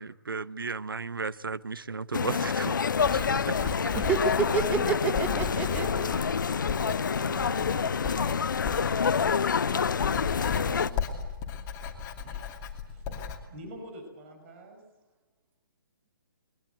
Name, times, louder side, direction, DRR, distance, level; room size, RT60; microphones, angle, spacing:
voice 1, 0.0-3.5, right 4 dB, 70° right, 17 dB, 0.9 m, -35 dB
sound 1, 2.1-10.9, left 6 dB, 60° left, 0.8 m, -27 dB
Writing, 2.9-13.4, left 6 dB, 20° left, 2.6 m, -36 dB
voice 2, 3.9-6.4, right 5 dB, 10° right, 9 dB, 1.2 m, -29 dB
voice 3, 6.9-9.2 12.2-12.5 12.9-13.2 13.5-14.8, right 1 dB, 35° right, 4 dB, 5.1 m, -47 dB
21.5 x 21.0 x 7.9 m, 1.1 s
figure-of-eight pair, 135°, 12 cm